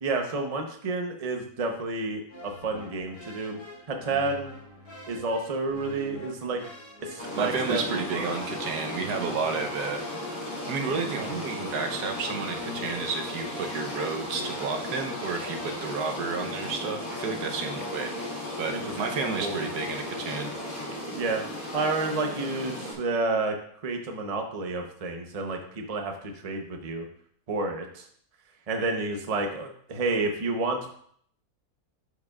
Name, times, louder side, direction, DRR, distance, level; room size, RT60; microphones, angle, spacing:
voice 1, 0.0-3.6 3.9-4.5 5.1-6.6 7.0-8.4 18.7-18.8 19.4-19.8 21.1-21.4 21.7-23.6 23.8-27.1 27.5-28.0 28.7-30.9, right 3 dB, 30° right, 3 dB, 0.7 m, -30 dB
sound 1, 2.3-16.0, left 1 dB, 85° left, 3.7 m, -45 dB
sound 2, 7.2-22.9, left 1 dB, 20° left, 2.5 m, -35 dB
voice 2, 7.3-10.0 10.7-20.5, right 5 dB, 85° right, 3 dB, 1.4 m, -31 dB
11.5 x 5.2 x 2.4 m, 0.62 s
omnidirectional pair, 1.7 m